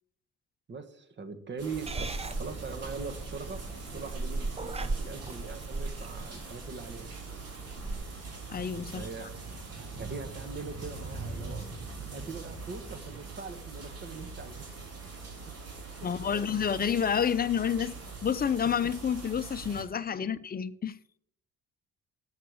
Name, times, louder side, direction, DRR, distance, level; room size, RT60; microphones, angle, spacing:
voice 1, 0.7-2.1 2.4-3.6 3.9-7.1 8.9-9.3 9.8-11.7 12.1-14.8 15.4-15.5 16.0-16.5, right 4 dB, 35° right, 1.4 m, -41 dB
sound 1, 1.6-19.8, right 4 dB, 55° right, 3.7 m, -42 dB
Purr / Meow, 1.9-7.9, right 3 dB, 20° right, 0.7 m, -37 dB
voice 2, 8.5-9.3 16.0-17.9 18.2-21.0, left 7 dB, 30° left, 0.6 m, -29 dB
8.0 x 6.5 x 7.9 m
cardioid pair, 90°, 30 cm